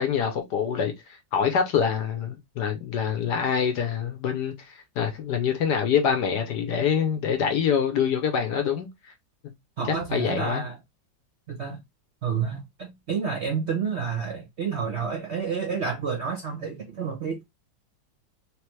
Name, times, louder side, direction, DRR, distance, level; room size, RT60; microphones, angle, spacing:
voice 1, 0.0-8.9 10.1-10.6, left 7 dB, 65° left, 1.2 m, -25 dB
voice 2, 9.8-10.8 11.5-11.8 12.2-17.4, right 6 dB, 50° right, 0.8 m, -29 dB
3.3 x 3.3 x 3.1 m
omnidirectional pair, 2.1 m